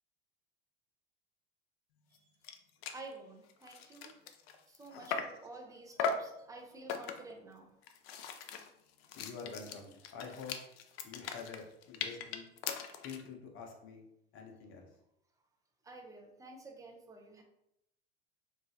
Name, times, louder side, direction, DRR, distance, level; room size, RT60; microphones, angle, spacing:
sound 1, 2.2-2.3 2.4-2.6 2.8-3.1 3.5-5.5 6.0-6.4 6.9-7.4 7.8-13.3, left 6 dB, 70° left, 0.5 m, -39 dB
voice 1, 2.9-4.1 4.7-7.7 15.8-17.4, right 3 dB, 10° right, 1 dB, 0.6 m, -51 dB
voice 2, 9.2-10.6 11.0-12.4 13.0-14.0 14.3-14.9, left 5 dB, 40° left, 2 dB, 0.8 m, -47 dB
3.0 x 2.4 x 2.7 m, 0.80 s
hypercardioid pair, 85°, 32 cm